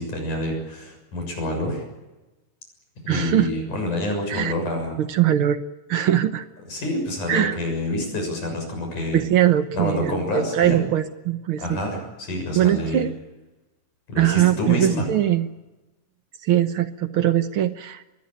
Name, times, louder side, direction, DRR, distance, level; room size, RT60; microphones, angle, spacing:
voice 1, 0.0-1.8 3.0-5.0 6.7-9.3 9.7-10.8 11.6-13.1 14.1-15.1, left 1 dB, 65° left, 3 dB, 8.2 m, -27 dB
voice 2, 3.1-3.5 4.3-4.5 5.0-5.6 5.9-6.4 7.3-7.6 9.1-11.8 12.5-13.1 14.2-15.5 16.4-18.0, right 11 dB, 80° right, 10 dB, 1.1 m, -21 dB
25.0 x 22.0 x 9.0 m, 1.1 s
omnidirectional pair, 3.8 m